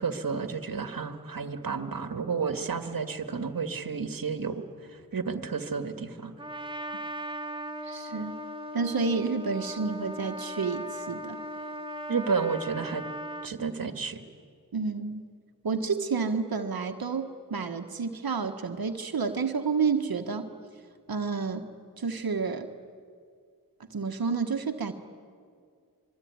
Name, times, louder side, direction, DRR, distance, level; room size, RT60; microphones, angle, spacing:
voice 1, 0.0-4.6 5.1-6.3 12.1-13.0 13.4-14.2, right 5 dB, 70° right, 7 dB, 1.9 m, -31 dB
Trumpet, 6.4-13.5, equal, 15° right, 2.8 m, -38 dB
voice 2, 7.8-8.3 8.7-11.4 14.7-15.2 15.6-20.5 21.1-21.6 22.0-22.7 23.9-24.9, right 5 dB, 85° right, 5 dB, 1.5 m, -30 dB
25.0 x 24.0 x 9.6 m, 2.1 s
wide cardioid pair, 65°, 35 cm